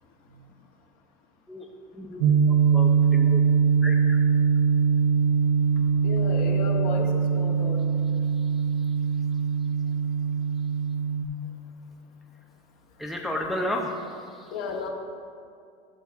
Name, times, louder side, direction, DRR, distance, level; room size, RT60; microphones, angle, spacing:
sound 1, 2.2-11.2, right 6 dB, 65° right, 0.8 m, -22 dB
voice 1, 2.5-3.4 3.8-4.2 8.4-9.0 13.0-14.6, left 1 dB, ahead, 0 dB, 0.5 m, -33 dB
voice 2, 6.0-7.8 14.5-14.9, left 5 dB, 55° left, 1 dB, 1.1 m, -33 dB
12.0 x 7.3 x 2.4 m, 2.4 s
supercardioid pair, 145°, 17 cm